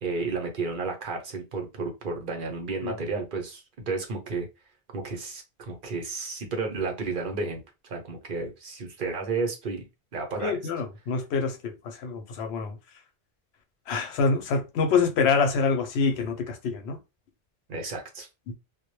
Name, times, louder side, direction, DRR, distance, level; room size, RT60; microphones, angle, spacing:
voice 1, 0.0-4.5 4.9-9.8 10.1-10.5 17.7-18.3, right 4 dB, 55° right, 0.8 m, -32 dB
voice 2, 10.4-12.8 13.9-17.0 18.5-18.6, left 5 dB, 90° left, 0.9 m, -26 dB
2.1 x 2.1 x 3.0 m
omnidirectional pair, 1.1 m